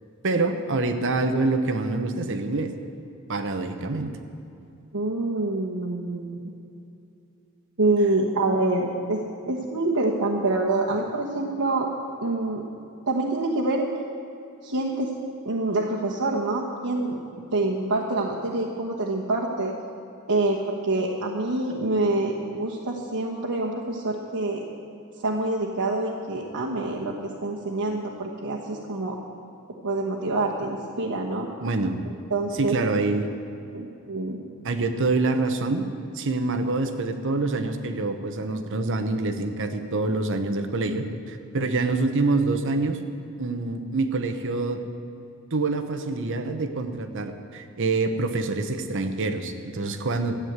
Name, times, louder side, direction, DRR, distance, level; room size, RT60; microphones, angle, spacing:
voice 1, 0.2-2.7 3.3-4.1 31.6-32.0 32.5-33.3 34.6-35.9 36.1-43.0 43.4-44.8 45.5-50.4, right 3 dB, 60° right, 8 dB, 1.0 m, -26 dB
voice 2, 4.9-6.5 7.8-11.9 12.2-12.6 13.1-13.9 14.6-15.1 15.4-19.7 20.3-24.6 25.2-29.2 29.8-31.5 32.3-32.7 33.7-34.4, right 2 dB, 85° right, -4 dB, 1.3 m, -26 dB
13.5 x 9.2 x 8.1 m, 2.7 s
head